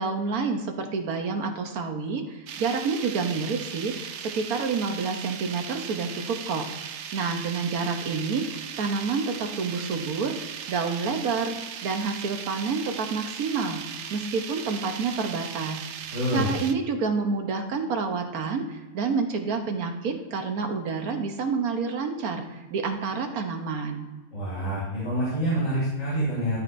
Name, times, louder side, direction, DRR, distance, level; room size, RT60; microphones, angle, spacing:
voice 1, 0.0-10.4 10.7-11.5 11.8-13.8 14.1-15.8 16.3-24.1, right 4 dB, 85° right, 4 dB, 1.5 m, -28 dB
sound 1, 2.5-16.7, right 8 dB, 65° right, 0.8 m, -38 dB
voice 2, 16.1-16.5 24.3-26.6, right 1 dB, 65° left, -8 dB, 3.0 m, -27 dB
12.5 x 6.2 x 2.6 m, 1.2 s
omnidirectional pair, 1.5 m